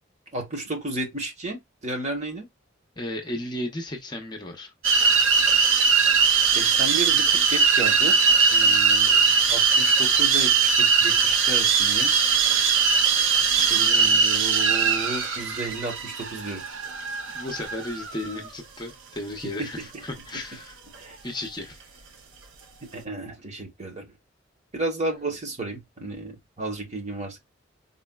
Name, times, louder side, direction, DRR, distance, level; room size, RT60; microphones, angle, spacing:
voice 1, 0.3-2.5 6.4-8.2 8.5-12.1 13.6-16.7 19.6-19.9 20.9-21.2 22.9-24.0 24.7-27.4, right 2 dB, 35° right, 1.0 m, -33 dB
voice 2, 3.0-4.7 17.3-20.8 21.2-21.8, left 1 dB, 20° left, 0.6 m, -34 dB
sound 1, 4.8-18.5, right 5 dB, 75° right, 0.5 m, -20 dB
3.9 x 2.1 x 2.2 m
head